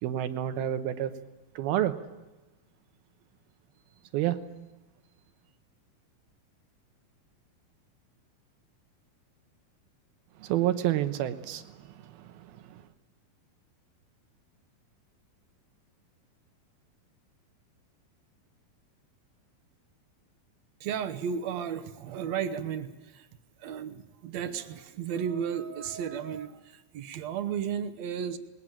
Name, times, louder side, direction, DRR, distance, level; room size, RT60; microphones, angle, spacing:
voice 1, 0.0-1.1 1.6-2.0 4.1-4.4 10.4-12.8, right 12 dB, 85° right, 9 dB, 2.9 m, -29 dB
voice 2, 20.8-23.3 23.6-28.4, right 8 dB, 70° right, 10 dB, 1.7 m, -34 dB
20.5 x 19.5 x 8.9 m, 1.1 s
omnidirectional pair, 4.3 m